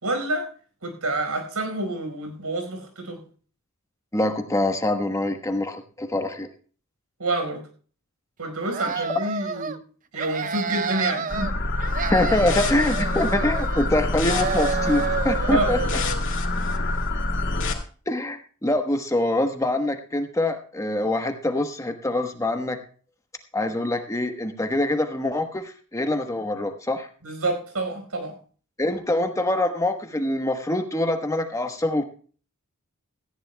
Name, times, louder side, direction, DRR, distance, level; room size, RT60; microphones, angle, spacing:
voice 1, 0.0-0.5 0.8-3.2 7.2-7.6 8.4-9.7 10.1-11.5 15.4-15.7 27.2-28.3, right 2 dB, 90° right, 5 dB, 4.7 m, -28 dB
voice 2, 4.1-6.5 12.1-15.8 18.1-22.8 23.5-27.1 28.8-32.0, left 1 dB, 15° left, 6 dB, 1.1 m, -24 dB
sound 1, 8.6-9.8 10.1-11.5 11.8-14.0 14.2-16.2, right 5 dB, 35° right, 0.6 m, -30 dB
sound 2, 11.3-17.7, left 2 dB, 55° left, 2.4 m, -26 dB
17.5 x 14.5 x 2.2 m, 0.41 s
head